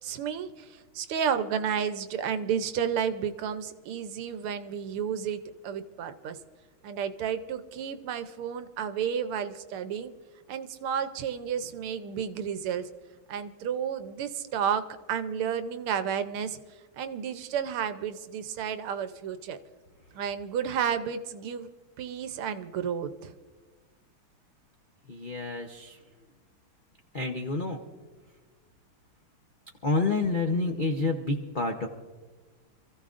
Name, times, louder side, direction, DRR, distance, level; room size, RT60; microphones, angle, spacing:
voice 1, 0.0-6.4 6.8-10.1 10.5-12.9 13.3-16.6 17.0-19.6 20.1-21.7 22.0-23.3, right 8 dB, 80° right, 10 dB, 1.7 m, -32 dB
voice 2, 25.1-26.0 27.1-27.8 29.8-31.9, left 3 dB, 90° left, 3 dB, 0.4 m, -28 dB
27.0 x 15.0 x 2.5 m, 1.4 s
omnidirectional pair, 2.4 m